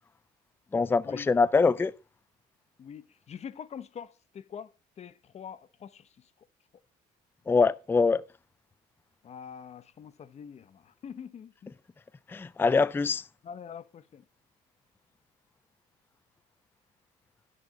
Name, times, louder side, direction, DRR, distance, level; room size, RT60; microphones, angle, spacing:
voice 1, 0.7-1.9 7.5-8.2 12.3-13.2, left 4 dB, 15° left, 0.4 m, -24 dB
voice 2, 2.8-4.7 5.0-6.3 9.2-11.7 13.4-14.2, left 7 dB, 40° left, 0.8 m, -44 dB
11.0 x 6.7 x 3.7 m
cardioid pair, 110°, 17 cm